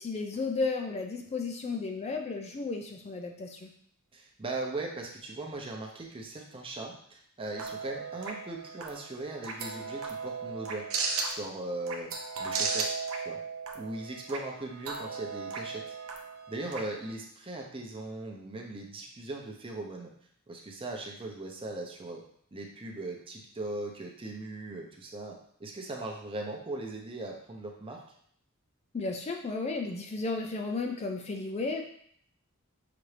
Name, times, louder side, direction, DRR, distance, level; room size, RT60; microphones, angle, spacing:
voice 1, 0.0-3.7 28.9-31.8, left 3 dB, 30° left, 3 dB, 0.4 m, -33 dB
voice 2, 4.1-10.9 11.3-12.1 12.4-13.4 13.7-15.9 16.5-20.1 20.5-22.2 22.5-28.0, right 2 dB, 25° right, 0 dB, 0.7 m, -39 dB
sound 1, 7.5-17.1, right 4 dB, 65° right, 0.7 m, -36 dB
5.8 x 2.7 x 3.3 m, 0.64 s
head